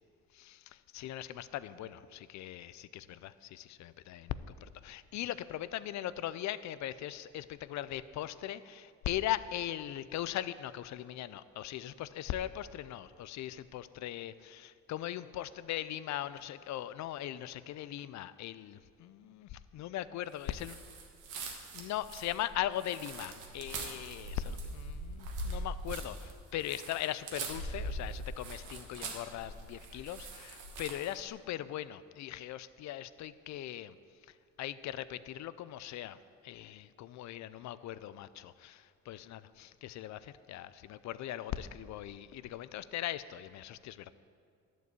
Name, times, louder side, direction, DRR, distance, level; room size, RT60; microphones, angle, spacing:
voice 1, 0.3-20.7 21.7-33.9 34.6-36.2 36.4-44.1, left 12 dB, 65° left, 15 dB, 0.5 m, -40 dB
sound 1, 20.5-31.2, right 2 dB, 90° right, 1.4 m, -42 dB
11.0 x 4.6 x 8.2 m, 2.2 s
cardioid pair, 90°, 30 cm